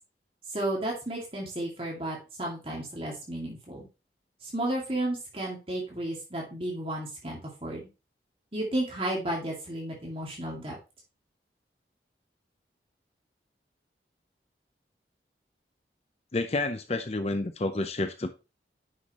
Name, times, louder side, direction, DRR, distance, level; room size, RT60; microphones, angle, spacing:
voice 1, 0.5-3.9 4.4-7.9 8.5-10.8, right 1 dB, 30° right, -3 dB, 2.3 m, -33 dB
voice 2, 16.3-18.3, left 2 dB, 35° left, 8 dB, 0.6 m, -29 dB
9.8 x 5.8 x 3.0 m, 0.29 s
head